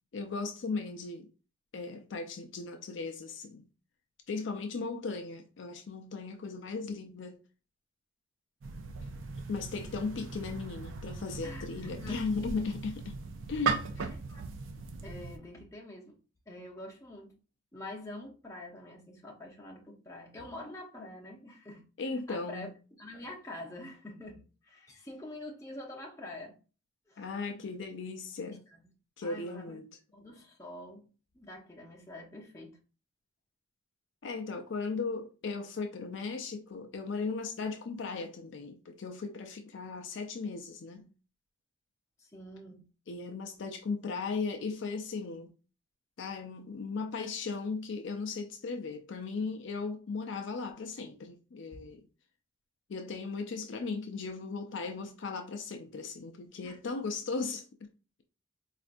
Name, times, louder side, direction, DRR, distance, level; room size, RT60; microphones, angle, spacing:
voice 1, 0.1-1.3 1.7-3.7 4.3-7.4 9.5-13.2 13.5-14.1 22.0-22.7 27.2-28.6 29.2-29.9 34.2-41.1 43.1-45.5 46.2-52.0 52.9-57.6, left 4 dB, 60° left, 0.4 m, -37 dB
sound 1, 8.6-15.4, right 4 dB, 70° right, 0.4 m, -38 dB
voice 2, 11.4-12.3 14.0-14.4 14.8-16.2 16.5-17.3 17.7-21.8 22.3-22.7 23.0-26.6 27.1-27.3 28.7-28.9 29.2-29.8 30.1-31.1 31.3-32.8 42.2-42.8 56.6-56.8, left 1 dB, 15° left, 0.7 m, -46 dB
4.3 x 2.5 x 2.5 m
head